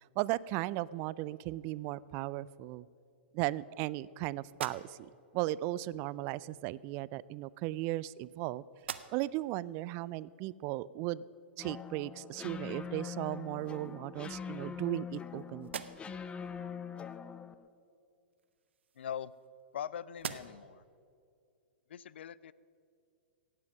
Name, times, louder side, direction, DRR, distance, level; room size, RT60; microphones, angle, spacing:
voice 1, 0.2-2.9 3.3-8.6 9.1-11.2 11.6-15.8, right 17 dB, 40° right, 20 dB, 0.3 m, -36 dB
sound 1, 4.5-5.3 6.4-6.6 7.5-8.4 8.7-9.5 10.0-10.1 12.7-12.8 13.3-14.0 14.5-15.3 15.6-16.3 18.3-19.8 20.1-20.8, right 8 dB, 75° right, 0.6 m, -46 dB
sound 2, 11.6-17.7, left 6 dB, 15° left, 0.5 m, -43 dB
voice 2, 19.0-19.3 19.7-20.8 21.9-22.5, left 9 dB, 70° left, 19 dB, 0.4 m, -41 dB
17.5 x 7.6 x 6.0 m, 2.4 s
hypercardioid pair, 110°, 6 cm